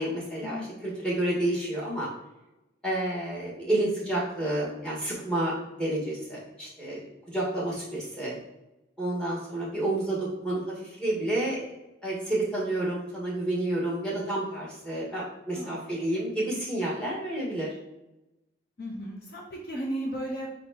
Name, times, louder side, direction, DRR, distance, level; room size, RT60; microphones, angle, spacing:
voice 1, 0.0-2.1 2.8-8.3 9.0-11.6 12.0-17.7, right 1 dB, 5° left, -6 dB, 1.5 m, -30 dB
voice 2, 15.5-15.9 18.8-20.5, right 1 dB, 55° left, -1 dB, 0.7 m, -35 dB
4.4 x 4.3 x 2.8 m, 0.97 s
head